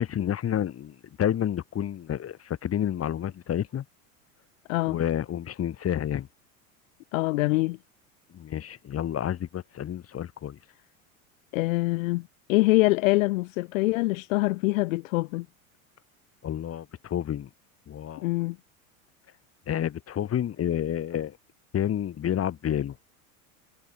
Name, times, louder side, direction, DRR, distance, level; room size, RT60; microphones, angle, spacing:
voice 1, 0.0-3.8 4.9-6.3 8.3-10.6 16.4-17.5 17.9-18.3 19.7-21.4 21.7-23.0, left 10 dB, 35° left, 4.2 m, -29 dB
voice 2, 4.7-5.0 7.1-7.8 11.5-15.5 18.2-18.6, left 22 dB, 70° left, 0.9 m, -24 dB
hypercardioid pair, 95°, 40 cm